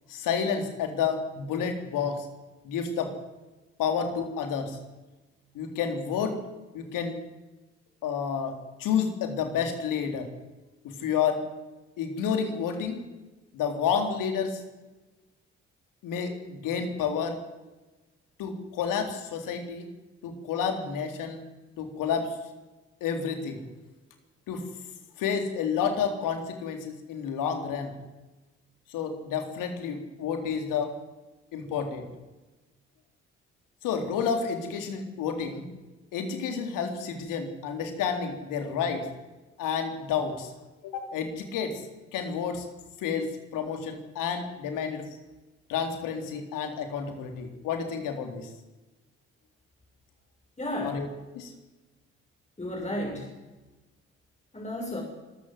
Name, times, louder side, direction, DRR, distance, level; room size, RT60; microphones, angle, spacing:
voice 1, 0.1-2.3 2.6-3.1 3.8-4.8 5.5-6.4 6.7-7.1 8.0-10.3 10.8-11.4 12.0-13.0 13.5-14.6 16.0-17.4 18.4-19.9 20.2-21.4 21.8-22.3 23.0-23.6 24.5-24.6 25.2-27.9 28.9-30.9 31.5-32.1 33.8-35.7 36.1-39.1 39.6-40.5 40.8-41.8 42.1-42.7 43.0-45.1 45.7-48.5 50.8-51.1 51.3-51.5, left 6 dB, 70° left, 5 dB, 3.8 m, -30 dB
voice 2, 50.6-51.0 52.6-53.3 54.5-55.0, left 1 dB, 20° left, 0 dB, 7.1 m, -33 dB
26.0 x 15.0 x 8.0 m, 1.1 s
hypercardioid pair, 45°, 33 cm